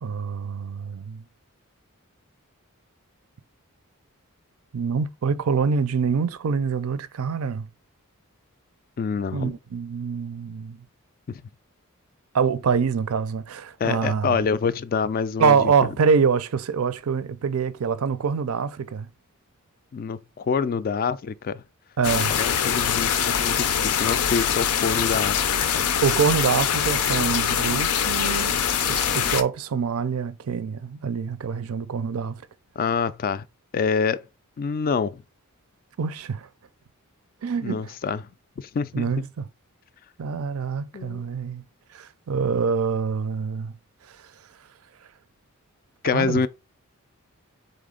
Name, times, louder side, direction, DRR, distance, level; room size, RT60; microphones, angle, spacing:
voice 1, 0.0-1.2 4.7-7.7 9.3-10.8 12.3-14.4 15.4-19.1 22.0-22.3 26.0-28.6 28.9-32.4 36.0-36.5 37.4-37.9 38.9-39.5 40.2-41.6 41.9-43.7 46.0-46.4, right 6 dB, 70° right, 0.4 m, -25 dB
voice 2, 9.0-9.5 11.3-11.4 13.8-15.7 19.9-21.6 22.3-25.4 25.7-25.9 32.8-33.4 33.7-34.2 34.6-35.2 37.6-38.2 38.6-39.2 40.9-41.2 46.0-46.5, left 5 dB, 40° left, 0.3 m, -26 dB
sound 1, 22.0-29.4, left 8 dB, 90° left, 0.5 m, -23 dB
4.1 x 3.4 x 3.7 m
head